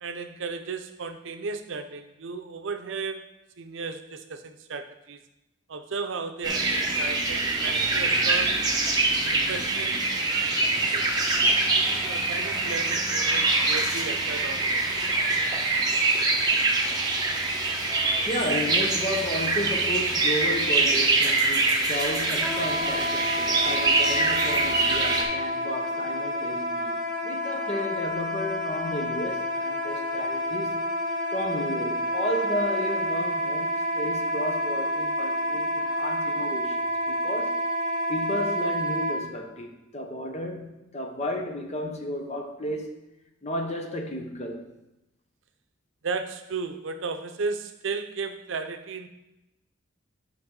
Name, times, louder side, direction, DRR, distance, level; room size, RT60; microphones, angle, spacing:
voice 1, 0.0-3.3 3.6-5.2 5.7-8.6 9.3-10.1 10.6-11.1 11.7-14.9 46.0-49.1, right 4 dB, 70° right, 0.6 m, -35 dB
sound 1, 6.4-25.2, right 3 dB, 20° right, 1.0 m, -24 dB
voice 2, 18.3-31.0 31.3-37.6 38.1-43.0 43.4-44.7, left 1 dB, 35° left, 0.9 m, -33 dB
Wind instrument woodwind instrument, 22.4-39.2, equal, 5° right, 2.4 m, -29 dB
8.9 x 5.6 x 3.8 m
head